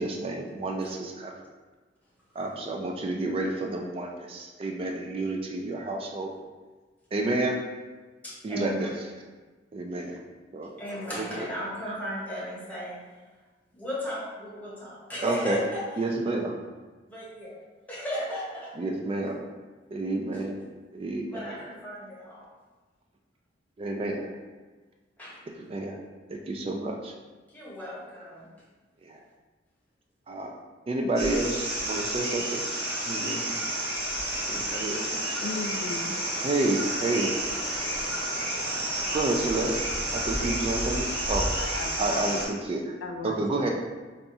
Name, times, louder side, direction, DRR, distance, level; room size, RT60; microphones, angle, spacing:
voice 1, 0.0-1.4 2.4-6.3 7.1-7.6 8.4-8.9 9.7-10.2 10.5-10.7 11.1-11.5 11.8-12.0 15.2-15.6 16.0-16.6 18.8-19.4 19.9-20.6 20.9-21.6 23.8-24.3 25.5-26.0 26.3-27.1 29.0-29.2 30.3-30.6 30.9-32.6 33.0-33.5 34.5-35.5 36.4-37.3 39.1-39.9 40.1-41.5 42.0-42.9 43.2-43.7, right 2 dB, 30° right, 1 dB, 0.3 m, -30 dB
voice 2, 8.2-8.9 10.8-13.0 13.7-15.9 17.1-17.6 17.9-18.7 20.3-20.7 21.2-22.5 25.2-25.4 27.5-28.5, left 1 dB, 10° left, -7 dB, 0.9 m, -36 dB
sound 1, 31.1-42.4, right 1 dB, 55° right, 1.4 m, -30 dB
voice 3, 35.4-36.1 41.3-42.0 43.0-43.4, left 3 dB, 90° left, 4 dB, 0.4 m, -36 dB
4.1 x 2.3 x 2.6 m, 1.3 s
head